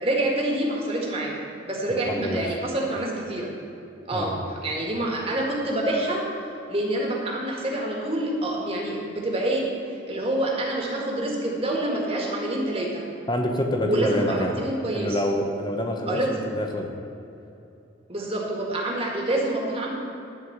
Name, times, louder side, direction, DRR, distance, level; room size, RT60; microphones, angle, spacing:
voice 1, 0.0-3.5 4.1-6.2 6.7-9.7 10.1-13.0 13.7-15.2 16.1-16.4 18.1-19.9, right 1 dB, 30° right, -2 dB, 1.8 m, -27 dB
voice 2, 1.9-2.6 4.1-4.4 13.3-14.6 14.9-16.9, left 1 dB, 20° left, 3 dB, 0.9 m, -27 dB
11.5 x 4.7 x 8.0 m, 2.8 s
head